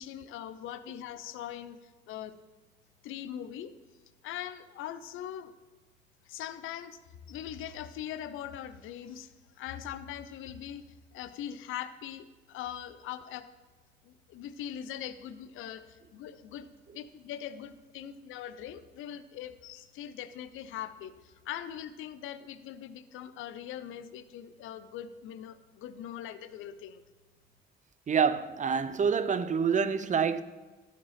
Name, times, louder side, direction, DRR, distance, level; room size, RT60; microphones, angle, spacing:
voice 1, 0.0-2.3 3.0-3.7 4.2-5.5 6.2-7.0 7.3-10.8 11.1-13.5 14.0-16.7 16.9-27.0, left 10 dB, 90° left, 0.6 m, -41 dB
voice 2, 28.1-30.4, right 6 dB, 40° right, 0.6 m, -27 dB
13.0 x 5.3 x 5.8 m
cardioid pair, 90°, 20 cm